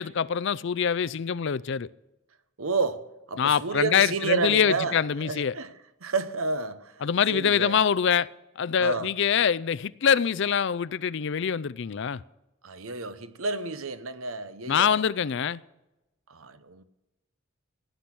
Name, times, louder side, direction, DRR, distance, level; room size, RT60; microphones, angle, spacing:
voice 1, 0.0-1.9 3.4-5.5 7.0-8.3 8.6-12.2 14.7-15.6, left 7 dB, 60° left, 0.4 m, -24 dB
voice 2, 2.6-5.0 5.2-5.7 6.0-7.0 7.3-7.8 8.8-9.1 12.6-15.0 16.3-16.8, right 4 dB, 75° right, 1.0 m, -30 dB
17.5 x 10.5 x 6.1 m
head